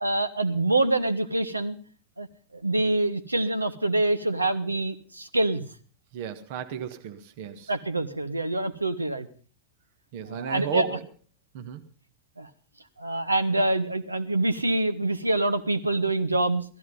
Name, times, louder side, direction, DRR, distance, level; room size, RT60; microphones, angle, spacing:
voice 1, 0.0-1.8 2.2-2.3 2.5-5.7 7.7-9.3 10.2-10.9 12.4-12.5 13.0-16.6, right 2 dB, 80° right, 10 dB, 1.1 m, -25 dB
voice 2, 6.1-7.7 10.1-11.0 11.5-11.8, right 9 dB, 50° right, 8 dB, 1.5 m, -33 dB
17.0 x 14.0 x 5.5 m, 0.42 s
figure-of-eight pair, 90°, 0 cm